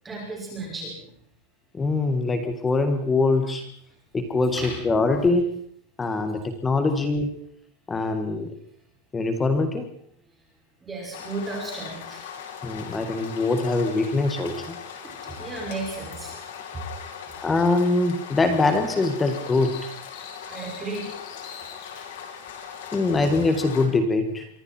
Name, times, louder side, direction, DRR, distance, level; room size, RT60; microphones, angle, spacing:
voice 1, 0.0-1.1 4.5-4.8 10.8-12.2 15.0-16.4 16.7-16.8 20.4-21.5, right 2 dB, 10° right, -2 dB, 5.8 m, -34 dB
voice 2, 1.7-3.7 4.1-5.5 6.0-7.5 7.9-8.6 9.1-9.9 12.6-14.8 17.4-19.9 22.9-24.5, left 3 dB, 10° left, 7 dB, 1.8 m, -23 dB
sound 1, 11.1-23.9, left 7 dB, 70° left, 5.7 m, -39 dB
sound 2, 19.2-22.1, left 7 dB, 45° left, 4.8 m, -45 dB
26.0 x 24.0 x 4.5 m, 0.62 s
supercardioid pair, 170°, 0 cm